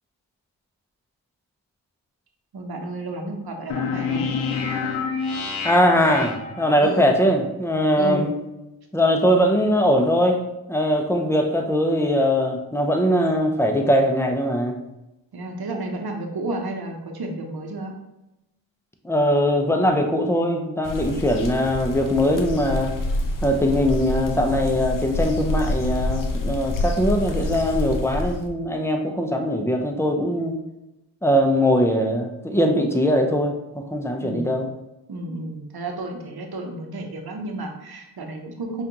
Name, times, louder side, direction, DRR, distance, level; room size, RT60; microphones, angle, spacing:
voice 1, 2.5-4.3 6.8-7.1 8.0-8.3 15.3-17.9 34.2-34.6 35.1-38.8, right 2 dB, 50° right, 3 dB, 0.9 m, -32 dB
sound 1, 3.7-7.0, left 5 dB, 85° left, 0.6 m, -27 dB
voice 2, 5.6-8.3 8.9-14.8 19.0-23.0 23.4-30.6 31.2-34.7, equal, 5° left, 3 dB, 0.6 m, -21 dB
sound 2, 20.8-28.5, left 1 dB, 45° left, 0.6 m, -27 dB
5.0 x 2.5 x 2.9 m, 0.94 s
cardioid pair, 50°, 47 cm